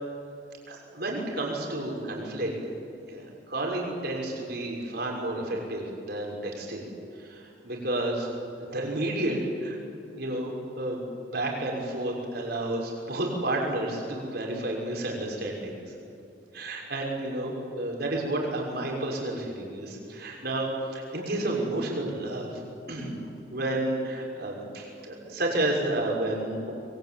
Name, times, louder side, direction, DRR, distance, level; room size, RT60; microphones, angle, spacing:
voice 1, 0.7-2.5 3.1-6.9 7.2-8.3 8.6-9.8 10.1-11.0 11.3-15.8 16.5-22.6 22.9-23.1 23.5-26.7, right 1 dB, 55° right, -1 dB, 6.3 m, -31 dB
25.5 x 22.5 x 9.3 m, 2.6 s
head